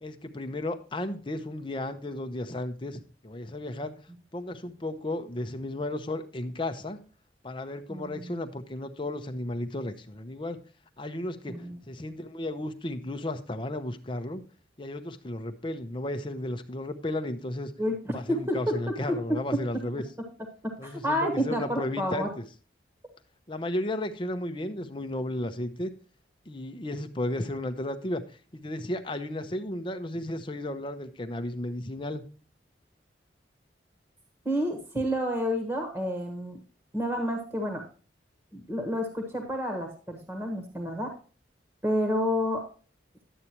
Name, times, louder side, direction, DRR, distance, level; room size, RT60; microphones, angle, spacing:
voice 1, 0.0-3.9 4.3-7.0 7.4-10.6 11.0-14.4 14.8-17.7 18.1-20.0 20.8-22.4 23.5-25.9 26.5-28.2 28.5-32.2, left 1 dB, 25° left, 7 dB, 0.7 m, -34 dB
voice 2, 7.9-8.3 11.5-11.8 17.8-17.9 18.3-18.7 19.1-19.2 20.6-22.3 34.4-36.6 36.9-37.8 38.5-41.1 41.8-42.6, equal, 15° right, 3 dB, 1.3 m, -29 dB
11.0 x 8.3 x 2.9 m, 0.37 s
head